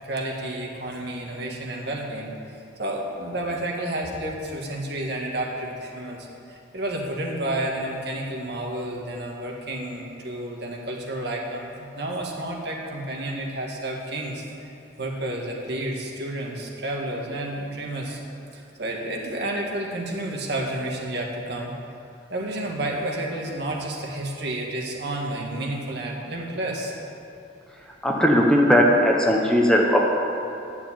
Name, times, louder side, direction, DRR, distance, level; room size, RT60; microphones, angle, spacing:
voice 1, 0.0-2.3 2.8-14.7 15.0-18.2 18.5-21.7 22.3-27.0, right 1 dB, 60° right, 0 dB, 1.8 m, -30 dB
voice 2, 28.0-30.2, equal, 5° left, -1 dB, 1.0 m, -18 dB
10.5 x 7.6 x 8.9 m, 2.7 s
head